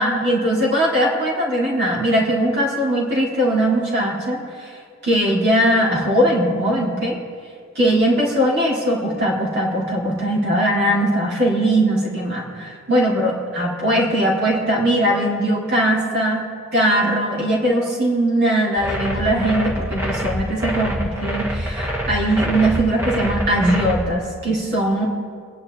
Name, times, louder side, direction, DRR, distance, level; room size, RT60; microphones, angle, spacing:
voice 1, 0.0-4.7 5.0-7.2 7.8-16.5 16.7-25.0, right 1 dB, 45° right, -5 dB, 4.0 m, -20 dB
sound 1, 18.8-24.0, equal, 10° right, 1.7 m, -25 dB
28.0 x 10.5 x 4.1 m, 2.2 s
head